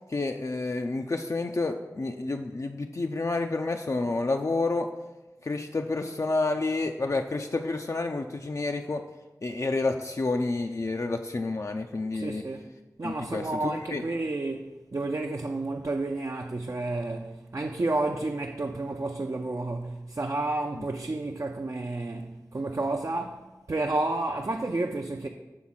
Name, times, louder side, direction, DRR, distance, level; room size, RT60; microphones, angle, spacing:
voice 1, 0.1-4.9 5.4-9.0 9.4-12.4 13.0-14.0 20.8-20.9, left 3 dB, 50° left, 0.4 m, -29 dB
voice 2, 12.1-12.6 13.0-23.4 23.7-25.3, right 2 dB, 45° right, 0.5 m, -31 dB
6.1 x 3.6 x 5.7 m
cardioid pair, 40°, 7 cm